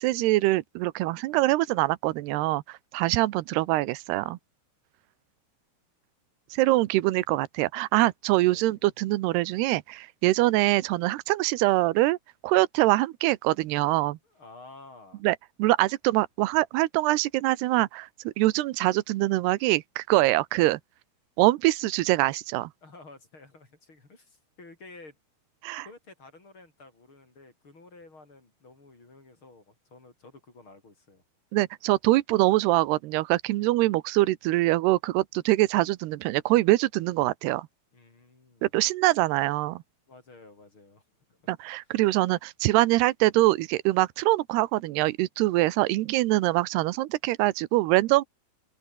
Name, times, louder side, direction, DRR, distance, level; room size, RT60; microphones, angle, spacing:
voice 1, 0.0-4.4 6.5-12.2 12.4-14.2 15.2-20.8 21.4-22.7 25.6-25.9 31.5-37.7 38.6-39.8 41.5-48.2, right 18 dB, 80° right, 3.0 m, -24 dB
voice 2, 8.5-8.9 14.2-15.2 22.8-25.2 25.8-31.2 37.9-38.7 40.1-41.0 41.3-41.4, left 3 dB, 30° left, 5.6 m, -51 dB
open air
omnidirectional pair, 4.7 m